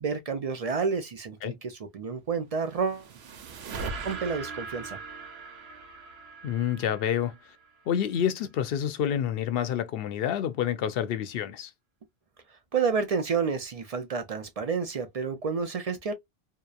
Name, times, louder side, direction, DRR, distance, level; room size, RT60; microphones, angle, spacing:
voice 1, 0.0-3.1 4.0-5.0 12.7-16.1, right 5 dB, 55° right, 0.4 m, -30 dB
sound 1, 2.5-7.9, right 4 dB, 85° right, 0.9 m, -40 dB
voice 2, 6.4-7.4 7.9-11.7, left 9 dB, 70° left, 0.7 m, -28 dB
2.8 x 2.0 x 2.3 m
omnidirectional pair, 1.0 m